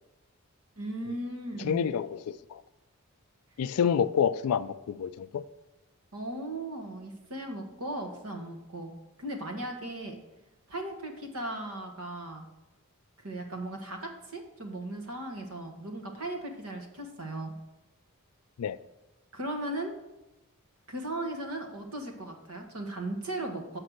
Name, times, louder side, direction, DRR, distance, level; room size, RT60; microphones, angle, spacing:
voice 1, 0.8-1.8 6.1-10.2 10.7-12.5 13.2-17.5 19.3-19.9 20.9-23.8, right 1 dB, 75° right, 1.3 m, -37 dB
voice 2, 1.6-2.6 3.6-5.4 18.6-18.8, left 7 dB, 80° left, 0.3 m, -28 dB
6.7 x 5.3 x 6.3 m
head